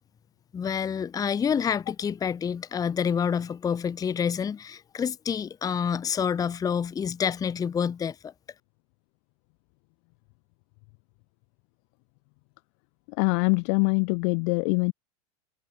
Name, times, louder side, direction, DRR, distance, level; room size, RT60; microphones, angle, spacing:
voice 1, 0.5-8.3, left 7 dB, 20° left, 0.7 m, -28 dB
voice 2, 13.2-14.9, left 40 dB or more, 60° left, 1.3 m, -23 dB
hypercardioid pair, 100°, 19 cm